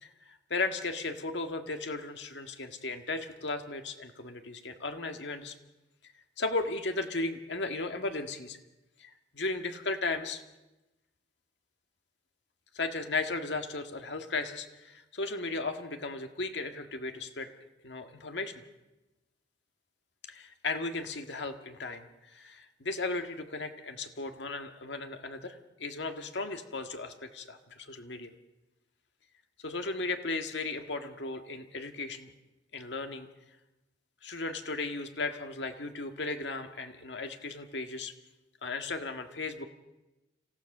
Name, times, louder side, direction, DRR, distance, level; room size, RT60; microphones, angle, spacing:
voice 1, 0.0-5.6 6.4-8.6 9.0-10.4 12.7-17.5 17.8-18.6 20.3-28.3 29.6-32.3 32.7-33.3 34.2-38.1 38.6-39.7, left 3 dB, 80° left, 6 dB, 1.8 m, -36 dB
26.5 x 15.5 x 6.6 m, 1.0 s
head